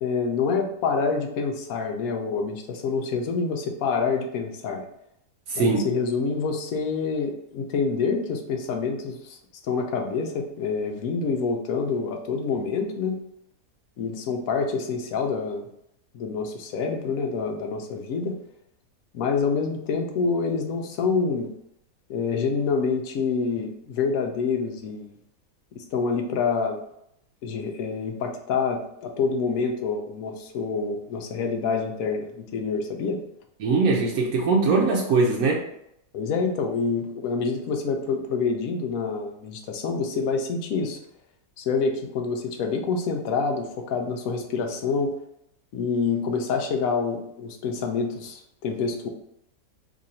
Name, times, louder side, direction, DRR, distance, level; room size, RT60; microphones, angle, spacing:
voice 1, 0.0-4.8 5.6-9.4 9.6-13.2 14.0-15.7 16.1-18.4 19.1-21.5 22.1-25.1 25.8-26.8 27.4-33.2 36.1-41.0 41.6-45.1 45.7-49.1, left 5 dB, 70° left, 4 dB, 1.0 m, -27 dB
voice 2, 5.5-5.9 33.6-35.6, right 3 dB, 80° right, -2 dB, 1.1 m, -21 dB
3.0 x 2.6 x 4.2 m, 0.76 s
omnidirectional pair, 1.6 m